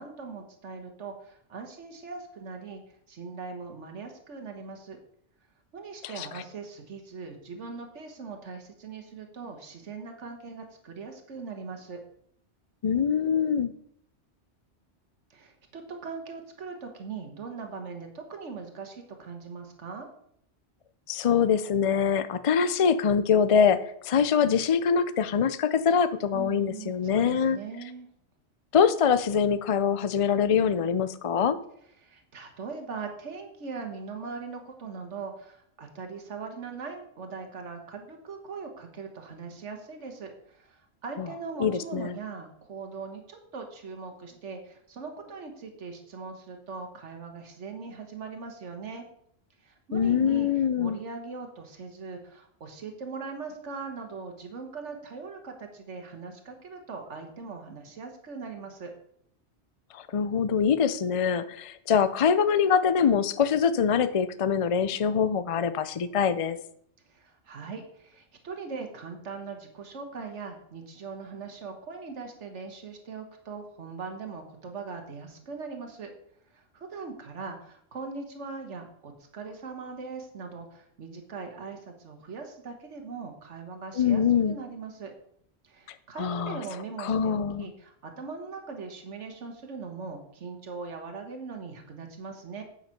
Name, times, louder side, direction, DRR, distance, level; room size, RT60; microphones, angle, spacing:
voice 1, 0.0-5.0 5.7-12.0 15.3-20.1 26.3-28.1 32.0-49.0 49.6-58.9 67.0-76.1 76.5-85.1 85.6-92.6, right 4 dB, 85° right, 4 dB, 1.6 m, -40 dB
voice 2, 12.8-13.7 21.1-23.8 24.0-27.6 28.7-31.6 41.2-41.3 41.6-42.1 49.9-51.0 59.9-66.6 83.9-84.6 86.2-86.6 87.0-87.7, left 7 dB, 50° left, 13 dB, 0.4 m, -24 dB
8.9 x 5.8 x 5.8 m, 0.68 s
omnidirectional pair, 1.2 m